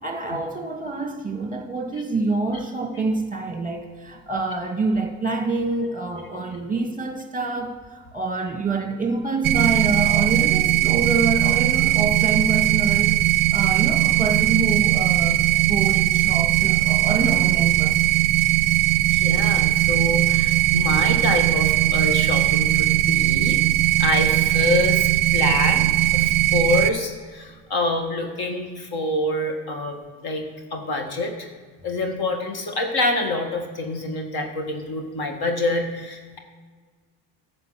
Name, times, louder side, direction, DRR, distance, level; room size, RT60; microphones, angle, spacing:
voice 1, 0.0-13.2 13.5-18.0, right 3 dB, 15° right, 3 dB, 1.9 m, -26 dB
sound 1, 9.4-26.9, right 16 dB, 45° right, 0.7 m, -19 dB
voice 2, 19.1-23.6 24.0-30.4 30.7-31.5 31.8-36.4, left 2 dB, 50° left, 4 dB, 2.0 m, -26 dB
10.0 x 5.2 x 7.6 m, 1.5 s
supercardioid pair, 80°, 47 cm